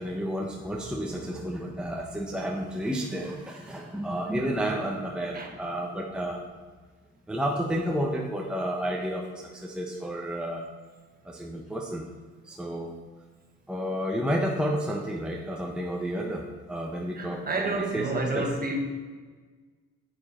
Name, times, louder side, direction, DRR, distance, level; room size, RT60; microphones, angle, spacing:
voice 1, 0.0-6.4 7.3-10.6 11.2-12.0 12.4-13.0 13.7-18.5, equal, 5° right, 1.0 m, -31 dB
voice 2, 17.2-18.8, right 3 dB, 30° right, 1.8 m, -30 dB
8.6 x 7.6 x 4.3 m
cardioid pair, 90°, 30 cm